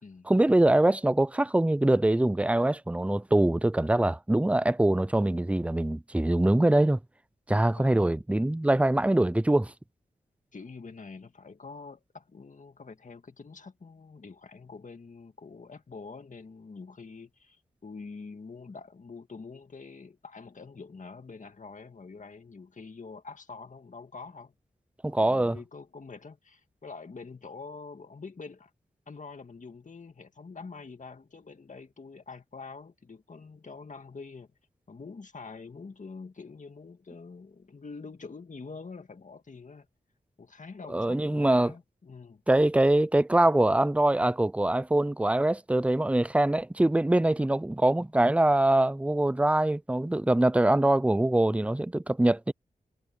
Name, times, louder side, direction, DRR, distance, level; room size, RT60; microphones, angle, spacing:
voice 1, 0.3-7.0 7.5-9.7 25.0-25.6 40.9-41.7 42.5-52.5, right 1 dB, 10° right, 0.5 m, -23 dB
voice 2, 10.5-24.5 25.1-28.7 29.1-34.5 34.9-39.9 40.4-42.4, left 4 dB, 55° left, 2.0 m, -45 dB
cardioid pair, 45°, 16 cm